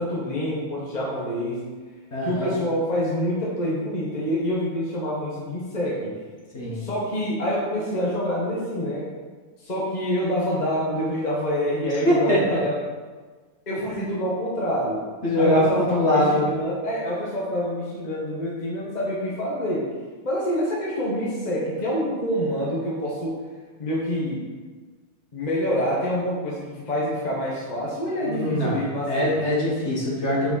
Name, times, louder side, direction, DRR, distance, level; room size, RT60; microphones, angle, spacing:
voice 1, 0.0-1.6 2.2-6.1 6.7-9.1 9.6-12.7 13.7-15.0 15.3-19.8 20.2-23.4 23.8-24.4 25.3-29.4, equal, 30° left, -5 dB, 1.4 m, -26 dB
voice 2, 2.1-2.5 6.5-6.8 12.1-12.6 15.2-16.5 28.2-28.8 29.1-30.5, left 1 dB, 45° left, -5 dB, 1.9 m, -22 dB
7.5 x 4.9 x 4.2 m, 1.4 s
omnidirectional pair, 1.6 m